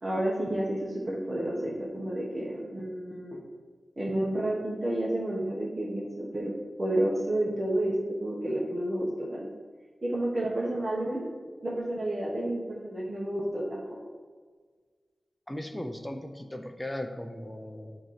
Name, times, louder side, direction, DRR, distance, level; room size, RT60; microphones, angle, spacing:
voice 1, 0.0-3.4 4.0-6.5 6.8-7.9 8.2-9.5 10.0-11.3 11.6-14.0, right 1 dB, 40° right, -6 dB, 1.3 m, -30 dB
voice 2, 15.5-18.0, left 1 dB, 10° left, 5 dB, 0.6 m, -37 dB
7.9 x 3.0 x 5.7 m, 1.6 s
wide cardioid pair, 80°, 0 cm